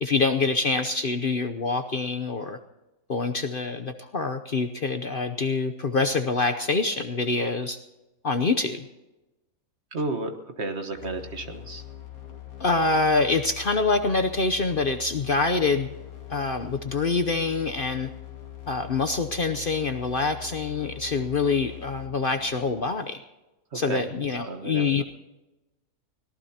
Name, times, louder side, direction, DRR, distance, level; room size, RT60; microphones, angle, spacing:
voice 1, 0.0-2.6 3.1-7.8 8.2-8.8 12.6-15.9 16.3-18.1 18.7-23.2 23.7-25.0, left 3 dB, 45° left, 7 dB, 0.9 m, -25 dB
voice 2, 9.9-11.8 23.7-24.1 24.4-25.0, right 2 dB, 50° right, 6 dB, 1.6 m, -32 dB
sound 1, 10.9-22.9, left 12 dB, 75° left, 2.3 m, -43 dB
24.0 x 18.0 x 2.9 m, 1.0 s
omnidirectional pair, 1.5 m